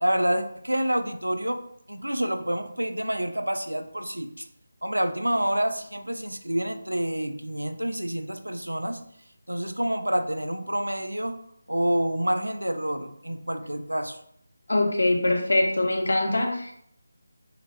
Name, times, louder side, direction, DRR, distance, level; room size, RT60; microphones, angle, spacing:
voice 1, 0.0-1.6 1.9-4.4 4.8-9.0 9.5-11.4 11.7-14.2, right 1 dB, 80° right, 8 dB, 0.3 m, -28 dB
voice 2, 14.7-16.7, left 2 dB, 60° left, 1 dB, 0.6 m, -23 dB
2.5 x 2.4 x 3.1 m, 0.70 s
figure-of-eight pair, 160°, 0 cm